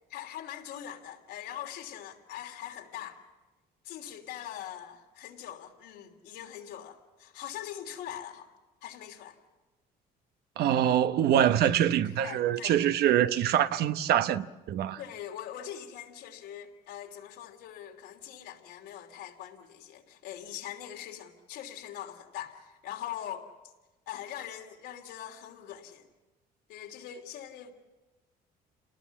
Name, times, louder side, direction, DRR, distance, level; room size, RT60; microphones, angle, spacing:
voice 1, 0.1-3.2 3.8-8.5 8.8-9.4 12.2-12.8 15.0-23.5 24.1-26.1 26.7-27.7, left 11 dB, 85° left, 3.1 m, -42 dB
voice 2, 10.6-15.0, right 10 dB, 70° right, 1.0 m, -25 dB
28.5 x 19.0 x 7.2 m
cardioid pair, 110°, 17 cm